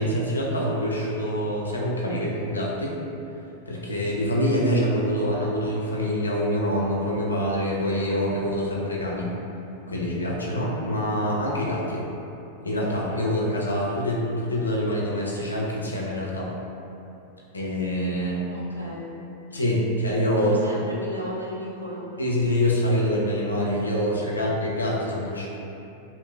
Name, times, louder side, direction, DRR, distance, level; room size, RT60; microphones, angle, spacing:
voice 1, 0.0-3.0 3.7-9.3 9.9-12.0 12.6-16.5 17.5-18.4 19.5-20.6 22.2-25.5, equal, 80° left, -4 dB, 0.4 m, -25 dB
voice 2, 18.5-19.1 20.3-22.1 24.0-24.5, equal, 85° right, -5 dB, 0.5 m, -35 dB
2.9 x 2.1 x 2.4 m, 2.8 s
figure-of-eight pair, 90°, 0 cm